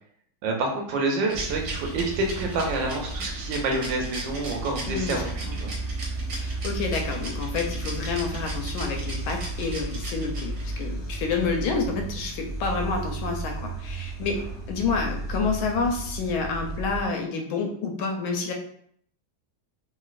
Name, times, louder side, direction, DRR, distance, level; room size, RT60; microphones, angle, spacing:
voice 1, 0.4-5.7, right 2 dB, 75° right, 1 dB, 1.3 m, -28 dB
sound 1, 1.3-17.0, right 2 dB, 40° left, 0.3 m, -33 dB
Rattle, 1.3-10.8, right 2 dB, 55° right, 1.2 m, -38 dB
voice 2, 4.9-5.6 6.3-18.5, left 4 dB, 90° left, 3 dB, 1.5 m, -29 dB
3.1 x 3.0 x 2.4 m, 0.64 s
omnidirectional pair, 2.2 m